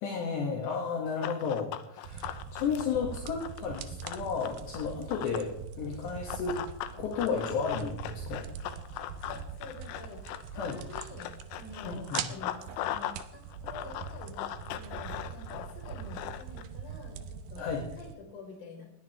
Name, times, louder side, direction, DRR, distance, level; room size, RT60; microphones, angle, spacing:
voice 1, 0.0-5.5 5.8-6.6 6.9-8.5 10.6-10.8 11.8-12.3 17.6-17.8, left 5 dB, 65° left, 0 dB, 3.9 m, -33 dB
Run, 1.2-5.5 6.3-13.2 13.5-16.6, left 12 dB, 80° left, 3.3 m, -39 dB
sound 1, 2.0-18.2, right 7 dB, 80° right, 2.2 m, -43 dB
voice 2, 9.3-18.9, left 3 dB, 40° left, 1 dB, 5.4 m, -48 dB
20.5 x 17.0 x 3.4 m, 0.73 s
omnidirectional pair, 5.9 m